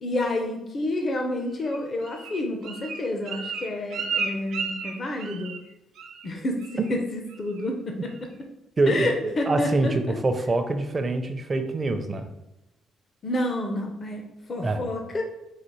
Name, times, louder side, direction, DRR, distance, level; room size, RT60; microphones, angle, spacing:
voice 1, 0.0-5.5 6.2-8.1 8.9-10.1 13.2-14.2 14.5-15.2, left 1 dB, 40° left, 3 dB, 0.7 m, -29 dB
Bird, 1.6-5.7 6.0-6.3 6.6-7.0 7.3-7.7 8.1-8.2, right 5 dB, 80° right, 0.6 m, -33 dB
voice 2, 8.8-12.3 14.6-14.8, right 2 dB, 30° right, 7 dB, 0.6 m, -25 dB
4.0 x 2.5 x 4.6 m, 0.94 s
cardioid pair, 90°, 0 cm